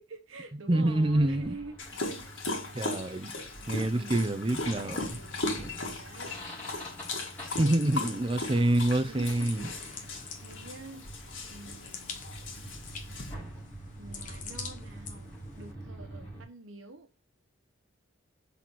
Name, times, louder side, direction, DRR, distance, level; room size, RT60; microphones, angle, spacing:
voice 1, 0.0-1.8 3.6-4.4 5.1-6.5 7.6-8.1 9.0-10.0 10.4-11.1 11.5-12.3 14.0-17.3, right 3 dB, 80° right, 1.1 m, -47 dB
voice 2, 0.7-1.6 2.7-3.3 3.7-5.1 7.6-9.7, right 1 dB, 25° right, 0.6 m, -26 dB
sound 1, 0.8-16.4, right 1 dB, 10° left, 3.9 m, -46 dB
Dog, 1.8-13.3, left 2 dB, 70° left, 2.0 m, -38 dB
sound 2, 4.4-15.7, left 6 dB, 40° left, 1.0 m, -47 dB
5.8 x 4.2 x 6.2 m
head